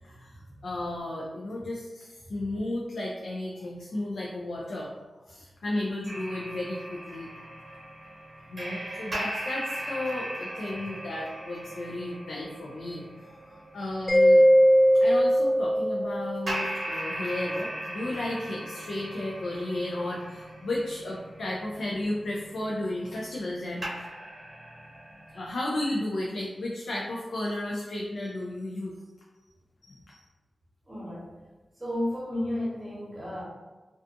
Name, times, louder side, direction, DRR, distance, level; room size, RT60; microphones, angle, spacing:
voice 1, 0.0-4.9 5.3-7.3 8.5-13.1 13.5-14.4 14.9-24.1 25.3-28.9 29.8-30.2, left 1 dB, 90° left, -4 dB, 0.4 m, -33 dB
sound 1, 6.1-14.8 16.5-23.6 23.8-25.5, right 1 dB, 50° right, 0.7 m, -38 dB
Mallet percussion, 14.1-16.6, equal, 20° left, 0.5 m, -20 dB
voice 2, 30.9-31.3 31.8-33.4, left 1 dB, 20° right, -4 dB, 0.9 m, -33 dB
2.4 x 2.3 x 2.5 m, 1.2 s
wide cardioid pair, 70°, 0 cm